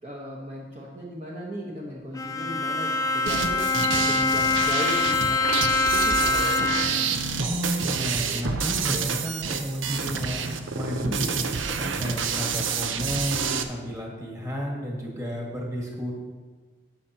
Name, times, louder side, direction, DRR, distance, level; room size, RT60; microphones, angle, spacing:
voice 1, 0.0-5.4 5.9-7.1 11.0-11.5, equal, 35° right, -4 dB, 1.0 m, -36 dB
Bowed string instrument, 2.1-7.2, left 3 dB, 20° left, 0.4 m, -24 dB
sound 1, 3.3-13.6, right 6 dB, 85° right, 0.6 m, -28 dB
voice 2, 7.4-11.2 11.8-16.1, equal, 15° right, -2 dB, 1.7 m, -32 dB
12.5 x 8.7 x 2.8 m, 1.4 s
head